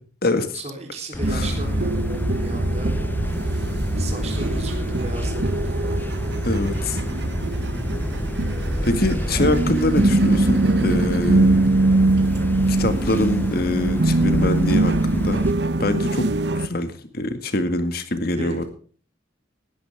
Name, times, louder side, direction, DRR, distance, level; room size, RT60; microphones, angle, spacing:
voice 1, 0.5-3.0 4.0-6.0 9.2-9.7 18.3-18.7, right 2 dB, 35° right, 2 dB, 3.8 m, -35 dB
sound 1, 1.1-15.5, left 1 dB, 10° left, 0.5 m, -28 dB
sound 2, 1.2-16.7, right 2 dB, 60° right, 0.9 m, -22 dB
voice 2, 6.4-7.0 8.8-11.6 12.7-15.4 15.8-16.3 16.5-18.6, left 1 dB, 50° left, 9 dB, 2.0 m, -24 dB
18.5 x 13.0 x 3.6 m, 0.42 s
head